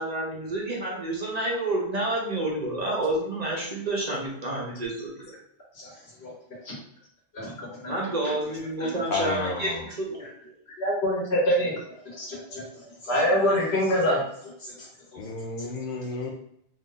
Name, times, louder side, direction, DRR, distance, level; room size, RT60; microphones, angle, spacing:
voice 1, 0.0-5.3 7.9-10.5, right 1 dB, 40° right, -3 dB, 0.9 m, -29 dB
voice 2, 7.3-7.9 8.8-8.9 10.8-11.7 12.0-12.7 13.0-14.2 14.6-14.7 15.6-15.7, equal, 85° left, -3 dB, 1.5 m, -25 dB
voice 3, 9.1-9.9 15.2-16.3, left 3 dB, 60° left, 1 dB, 0.7 m, -31 dB
3.1 x 2.6 x 3.8 m, 0.70 s
omnidirectional pair, 1.0 m